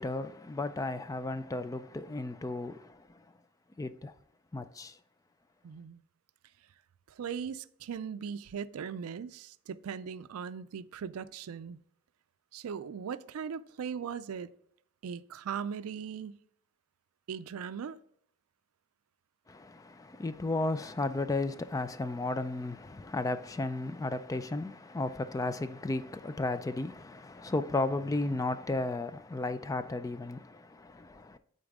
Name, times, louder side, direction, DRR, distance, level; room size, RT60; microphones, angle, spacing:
voice 1, 0.0-3.3 3.8-4.1 4.5-5.0 19.5-31.4, left 2 dB, 15° left, 0.3 m, -34 dB
voice 2, 5.6-6.0 7.1-11.8 12.5-14.5 15.0-16.4 17.3-18.0, right 7 dB, 90° right, 0.4 m, -39 dB
8.6 x 4.1 x 3.6 m
head